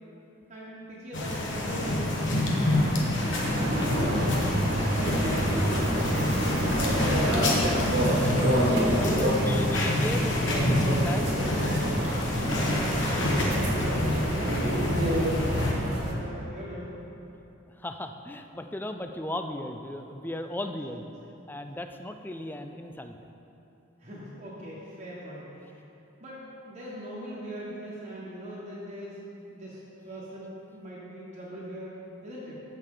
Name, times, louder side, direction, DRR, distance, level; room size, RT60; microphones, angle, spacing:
voice 1, 0.5-2.9 3.5-7.7 12.3-13.8 14.1-17.0 24.0-25.8 26.2-29.2 29.5-32.6, equal, 35° right, -7 dB, 1.4 m, -41 dB
sound 1, 1.1-15.7, left 1 dB, 65° left, 1.4 m, -27 dB
sound 2, 3.4-16.1, equal, 55° right, 1.5 m, -28 dB
voice 2, 8.9-11.3 17.8-21.0 21.5-23.2, left 1 dB, 10° left, 6 dB, 0.4 m, -36 dB
14.5 x 6.4 x 3.8 m, 2.9 s
head